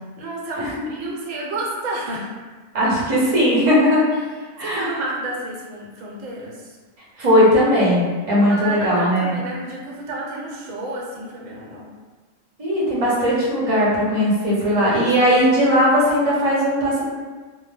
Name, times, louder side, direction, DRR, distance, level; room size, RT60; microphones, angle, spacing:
voice 1, 0.2-2.3 4.6-6.8 8.5-11.9 14.6-15.4, right 2 dB, 80° right, -3 dB, 1.0 m, -31 dB
voice 2, 2.7-4.1 4.6-5.0 7.2-9.3 12.6-17.0, equal, 35° right, -6 dB, 0.7 m, -18 dB
2.1 x 2.1 x 3.2 m, 1.4 s
omnidirectional pair, 1.3 m